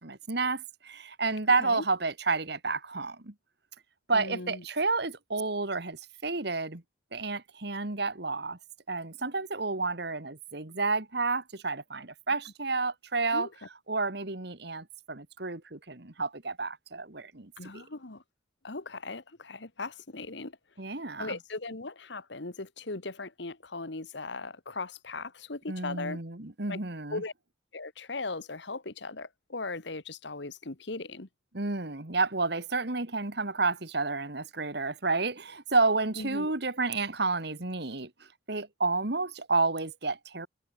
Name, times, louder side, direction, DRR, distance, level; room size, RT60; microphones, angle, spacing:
voice 1, 0.0-3.3 4.1-6.8 7.1-8.6 8.9-13.5 13.9-17.8 20.8-21.4 25.7-27.2 31.5-38.1 38.5-40.5, right 3 dB, 55° right, 1.9 m, -30 dB
voice 2, 4.1-4.6 13.3-13.5 17.6-18.2 18.6-20.5 21.2-26.2 26.7-26.8 27.1-27.3 27.7-31.3 36.2-36.5, left 3 dB, 65° left, 1.5 m, -38 dB
head